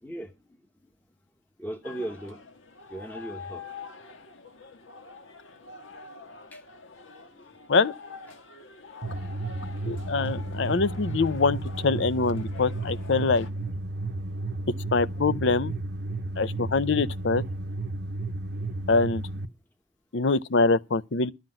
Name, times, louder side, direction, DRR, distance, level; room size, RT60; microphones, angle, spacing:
voice 1, 0.0-0.3 1.6-2.4 2.9-3.6 6.5-6.6 7.3-7.4 10.2-10.8 12.5-13.1, right 1 dB, 10° left, 1.0 m, -39 dB
sound 1, 1.8-13.5, left 4 dB, 80° left, 1.6 m, -45 dB
sound 2, 9.0-19.5, right 2 dB, 55° right, 0.8 m, -33 dB
voice 2, 9.8-11.6 11.8-13.5 14.9-15.7 16.4-17.4 18.9-19.2 20.1-21.3, left 4 dB, 65° left, 0.6 m, -24 dB
12.0 x 5.9 x 8.9 m
head